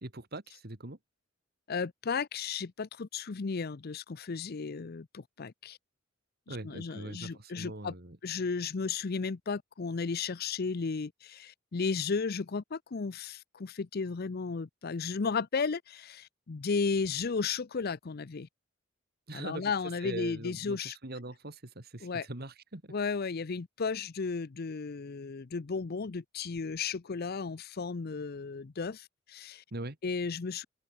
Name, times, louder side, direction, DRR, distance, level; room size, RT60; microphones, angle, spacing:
voice 1, 0.0-1.0 6.5-8.2 19.3-19.7 20.0-22.9 29.7-30.0, right 2 dB, 50° right, 2.5 m, -42 dB
voice 2, 1.7-5.8 6.5-7.9 8.2-18.5 19.3-21.0 22.0-22.3 22.9-29.6 30.0-30.7, left 5 dB, 50° left, 0.6 m, -34 dB
open air
head